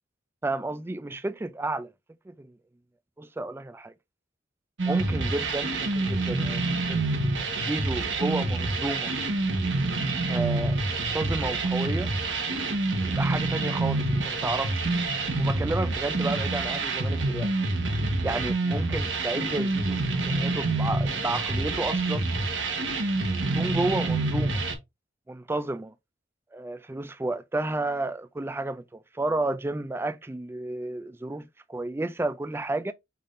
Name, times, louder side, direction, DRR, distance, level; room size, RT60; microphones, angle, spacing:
voice 1, 0.4-1.9 2.3-2.5 3.2-3.9 4.8-6.6 6.9-7.0 7.6-9.1 10.3-12.1 13.1-14.9 15.4-17.5 18.2-22.3 23.5-24.6 25.3-25.9 26.5-32.9, right 2 dB, 15° right, 0.3 m, -31 dB
sound 1, 4.8-24.7, right 2 dB, 80° right, 1.1 m, -27 dB
5.6 x 3.5 x 2.5 m
head